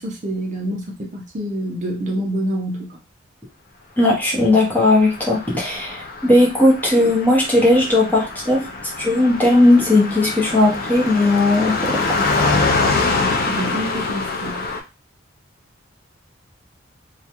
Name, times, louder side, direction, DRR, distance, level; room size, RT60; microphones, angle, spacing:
voice 1, 0.0-3.0 13.5-14.6, right 1 dB, 40° right, 0 dB, 0.5 m, -27 dB
voice 2, 4.0-8.7 9.0-11.8, left 2 dB, 10° left, -3 dB, 0.7 m, -16 dB
Car passing by, 4.9-14.8, left 3 dB, 50° left, 0.4 m, -24 dB
2.3 x 2.1 x 2.8 m, 0.29 s
head